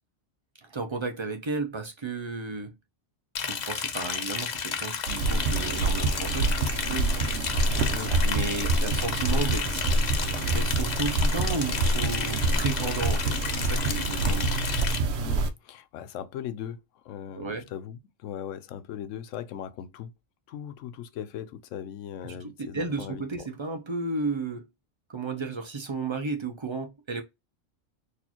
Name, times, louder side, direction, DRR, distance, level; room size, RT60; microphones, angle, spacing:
voice 1, 0.6-2.7 3.4-7.1 8.2-9.9 10.5-14.5 17.4-17.7 22.2-24.7 25.1-27.2, right 3 dB, 35° right, 0.4 m, -33 dB
Liquid, 3.3-15.0, left 6 dB, 50° left, 0.5 m, -32 dB
sound 1, 5.1-15.5, right 2 dB, 70° right, 0.9 m, -26 dB
voice 2, 7.8-8.2 15.2-20.1 20.5-23.5, left 9 dB, 85° left, 0.9 m, -39 dB
4.2 x 2.6 x 2.9 m
omnidirectional pair, 1.3 m